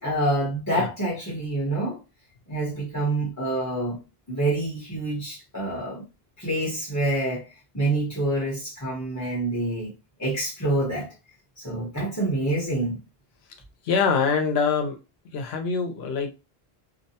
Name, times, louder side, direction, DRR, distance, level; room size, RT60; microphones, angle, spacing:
voice 1, 0.0-2.0 2.5-4.0 4.3-6.0 6.4-7.5 7.7-9.9 10.2-11.1 11.6-13.0, right 2 dB, 20° left, 0.8 m, -27 dB
voice 2, 13.8-15.0 15.3-16.3, left 5 dB, 85° left, 0.9 m, -24 dB
2.7 x 2.1 x 2.7 m
omnidirectional pair, 1.0 m